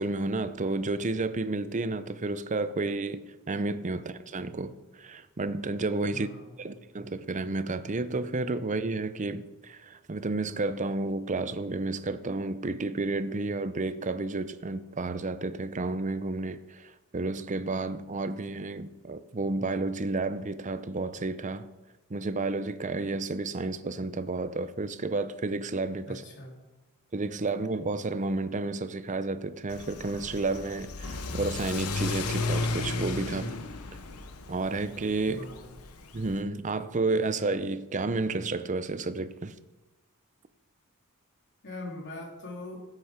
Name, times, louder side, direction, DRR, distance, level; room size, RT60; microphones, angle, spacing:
voice 1, 0.0-6.3 6.6-21.7 22.1-26.2 27.1-33.5 34.5-35.4 36.1-39.6, right 3 dB, 35° right, 0.7 m, -31 dB
voice 2, 6.1-6.7 26.1-26.5 35.2-35.7 41.6-42.8, left 2 dB, 55° left, 3.3 m, -42 dB
Car / Accelerating revving vroom, 29.7-36.4, left 3 dB, 85° left, 1.0 m, -34 dB
16.0 x 8.3 x 5.1 m
head